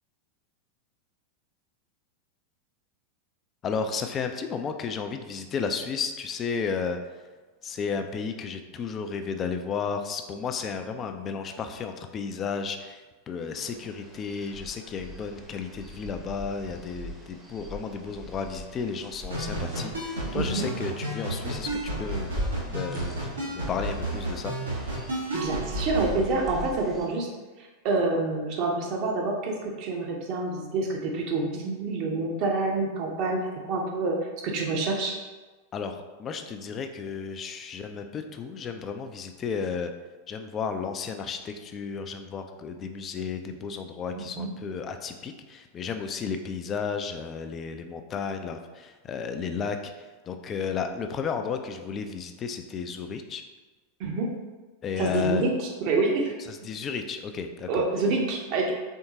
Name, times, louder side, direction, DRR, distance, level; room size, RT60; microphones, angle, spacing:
voice 1, 3.6-7.0 7.6-22.3 22.7-24.5 35.7-39.9 40.3-53.4 54.8-55.4 56.5-57.9, left 5 dB, 25° left, 6 dB, 0.4 m, -33 dB
sound 1, 13.5-27.1, left 1 dB, ahead, 0.8 m, -41 dB
sound 2, 19.3-26.1, right 1 dB, 75° right, 1.2 m, -32 dB
voice 2, 20.3-20.6 25.3-27.3 27.6-33.4 33.7-34.2 34.4-35.2 44.3-44.5 54.0-54.3 55.0-56.4 57.7-58.7, right 3 dB, 40° right, 0 dB, 0.8 m, -27 dB
4.5 x 3.5 x 2.7 m, 1.3 s
figure-of-eight pair, 90°, 0 cm